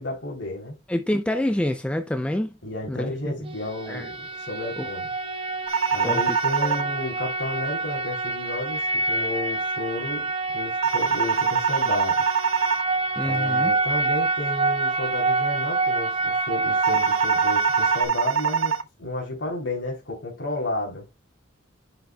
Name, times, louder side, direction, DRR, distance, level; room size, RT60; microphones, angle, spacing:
voice 1, 0.0-0.8 2.6-4.1 4.5-5.1 5.9-10.3 10.5-12.2 13.2-21.1, left 2 dB, 70° left, 3.2 m, -32 dB
voice 2, 0.9-2.5 2.9-3.5 3.9-4.1 4.8-4.9 6.0-6.2 6.6-6.8 13.2-13.7, left 1 dB, 5° left, 0.3 m, -27 dB
sound 1, 3.4-18.0, right 3 dB, 25° right, 1.0 m, -27 dB
sound 2, 5.7-6.8 10.8-12.8 16.8-18.8, right 6 dB, 80° right, 0.5 m, -24 dB
7.4 x 6.6 x 2.2 m
head